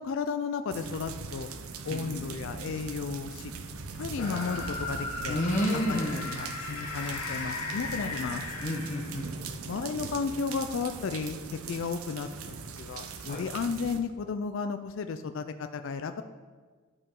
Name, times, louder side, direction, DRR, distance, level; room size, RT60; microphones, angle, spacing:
voice 1, 0.0-1.5 1.8-3.5 3.9-5.4 5.7-8.4 9.7-11.4 11.7-12.3 12.8-16.2, left 5 dB, 60° left, 9 dB, 0.3 m, -33 dB
sound 1, 0.7-14.0, right 4 dB, 80° right, 0.6 m, -40 dB
voice 2, 1.9-2.2 5.3-6.4 8.6-9.3 13.3-13.4, equal, 35° left, 0 dB, 1.0 m, -30 dB
sound 2, 4.2-9.3, left 3 dB, 85° left, 1.1 m, -37 dB
12.0 x 4.8 x 3.7 m, 1.4 s
head